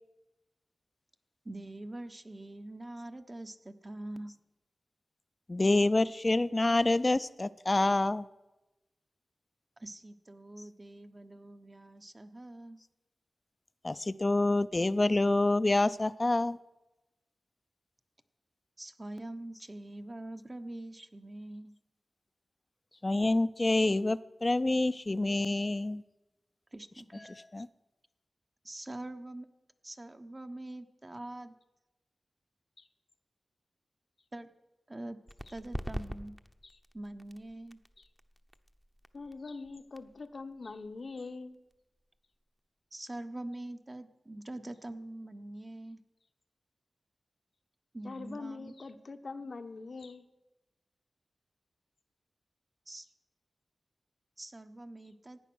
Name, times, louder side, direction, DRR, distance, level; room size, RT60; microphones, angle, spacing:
voice 1, 1.4-4.3 9.8-12.8 18.8-21.7 26.7-27.3 28.6-29.5 29.8-31.5 34.3-34.5 34.9-35.2 35.5-36.4 36.9-37.8 42.9-46.0 47.9-48.7 52.9-53.1 54.4-55.4, right 1 dB, 35° right, 7 dB, 1.1 m, -44 dB
voice 2, 5.5-8.3 13.8-16.6 23.0-26.0 27.5-27.7, left 2 dB, 35° left, 15 dB, 0.5 m, -27 dB
sound 1, 35.3-42.6, equal, 5° right, 0.9 m, -45 dB
voice 3, 39.1-41.6 48.0-50.2, left 3 dB, 65° left, 8 dB, 1.0 m, -43 dB
16.5 x 9.1 x 6.3 m, 1.0 s
cardioid pair, 40°, 0 cm